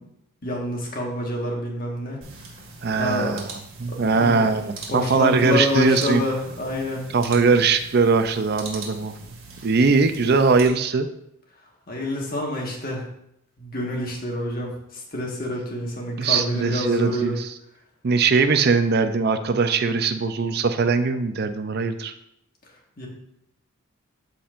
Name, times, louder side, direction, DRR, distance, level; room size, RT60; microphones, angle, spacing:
voice 1, 0.4-2.2 2.9-3.4 3.9-4.5 4.9-7.1 11.9-13.0 13.6-17.4 23.0-23.1, left 1 dB, 40° left, -1 dB, 1.5 m, -27 dB
sound 1, 2.2-10.7, right 3 dB, 65° right, 2.0 m, -41 dB
voice 2, 2.8-3.4 3.8-6.2 7.1-9.1 9.6-11.1 16.2-17.5 18.0-22.1, right 4 dB, 45° right, 10 dB, 0.4 m, -21 dB
13.0 x 4.3 x 2.5 m, 0.77 s
head